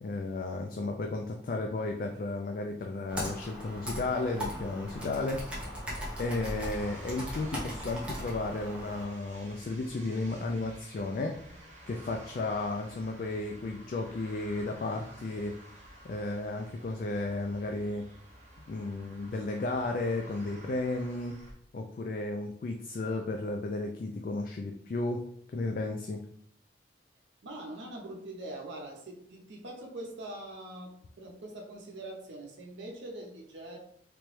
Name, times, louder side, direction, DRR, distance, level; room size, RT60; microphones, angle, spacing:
voice 1, 0.0-5.4 6.2-11.3 11.9-15.6 16.0-18.1 18.7-21.3 21.7-25.2 25.5-26.2, left 2 dB, 50° left, 3 dB, 0.3 m, -33 dB
Computer keyboard, 3.1-9.1, equal, 5° right, 0.8 m, -38 dB
sound 1, 6.2-21.5, right 1 dB, 40° right, 0.8 m, -52 dB
voice 2, 27.4-33.8, right 1 dB, 85° right, 0 dB, 0.6 m, -43 dB
3.3 x 2.9 x 3.1 m, 0.67 s
head